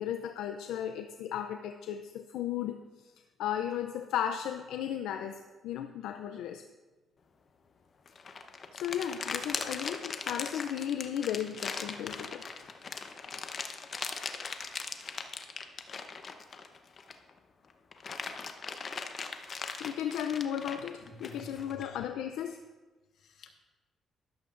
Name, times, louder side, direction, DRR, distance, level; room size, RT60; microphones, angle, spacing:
voice 1, 0.0-3.1 3.4-6.6 8.7-12.4 19.8-22.6, left 10 dB, 90° left, 7 dB, 0.4 m, -35 dB
sound 1, 8.1-17.3 17.7-21.9, left 5 dB, 45° left, 0.8 m, -39 dB
voice 2, 21.0-22.0 23.1-23.5, left 2 dB, 70° left, 4 dB, 1.3 m, -51 dB
13.0 x 12.0 x 2.5 m, 1.3 s
cardioid pair, 90°, 0 cm